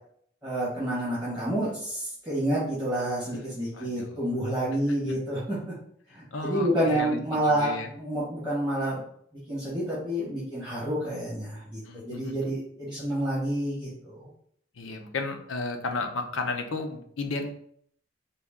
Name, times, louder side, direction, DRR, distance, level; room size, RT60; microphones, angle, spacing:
voice 1, 0.4-5.6 6.1-9.0 9.5-14.3, right 1 dB, 10° right, -8 dB, 1.4 m, -29 dB
voice 2, 3.7-4.2 6.3-7.9 11.9-12.5 14.8-17.5, left 3 dB, 90° left, 4 dB, 0.6 m, -33 dB
4.0 x 2.3 x 3.5 m, 0.65 s
head